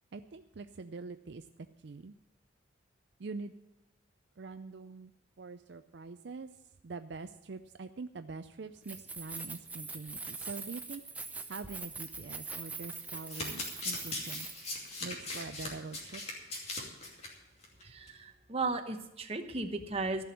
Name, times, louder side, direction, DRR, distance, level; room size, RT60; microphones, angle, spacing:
voice 1, 0.1-1.5 1.8-2.1 3.2-3.5 4.4-5.1 5.4-11.0 11.5-14.5 15.0-16.2, right 4 dB, 60° right, 10 dB, 0.5 m, -44 dB
Keys jangling, 8.8-14.9, right 4 dB, 10° right, 0.7 m, -43 dB
Domestic sounds home sounds, 13.1-17.3 17.6-17.8 18.1-18.2, left 2 dB, 30° left, 2.6 m, -39 dB
voice 2, 17.8-20.2, right 3 dB, 30° right, 6 dB, 1.0 m, -35 dB
14.5 x 6.1 x 9.5 m, 0.89 s
head